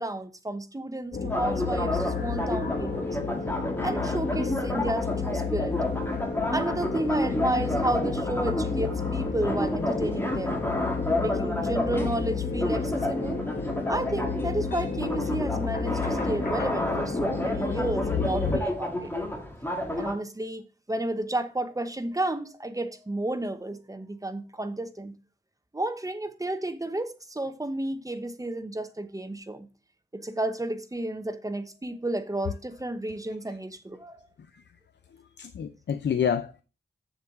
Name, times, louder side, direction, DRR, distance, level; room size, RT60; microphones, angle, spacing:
voice 1, 0.0-3.2 3.8-5.8 6.5-10.6 11.2-13.4 13.9-19.1 20.0-25.1 25.7-29.7 30.1-34.2, right 1 dB, 20° right, 0.8 m, -32 dB
sound 1, 1.1-18.6, left 4 dB, 50° left, 1.2 m, -31 dB
sound 2, 1.3-20.1, left 1 dB, 10° left, 1.7 m, -31 dB
voice 2, 35.1-36.6, left 8 dB, 75° left, 0.6 m, -29 dB
7.7 x 7.3 x 3.6 m
wide cardioid pair, 120°, 18 cm